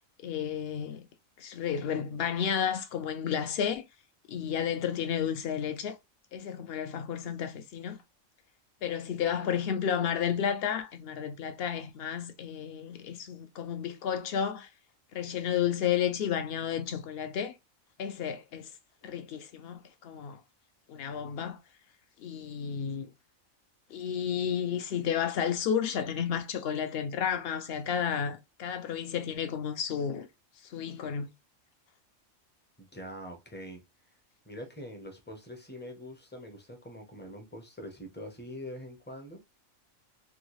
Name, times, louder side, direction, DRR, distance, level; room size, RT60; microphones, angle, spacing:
voice 1, 0.2-1.1 1.4-3.9 4.3-6.0 6.3-8.0 8.8-14.7 15.1-17.5 18.0-18.7 19.0-20.4 20.9-21.6 22.2-23.1 23.9-30.3 30.6-31.3, left 8 dB, 65° left, 0.6 m, -32 dB
voice 2, 32.8-33.8 34.5-39.4, equal, 15° left, 0.4 m, -44 dB
3.5 x 2.3 x 3.0 m
omnidirectional pair, 1.4 m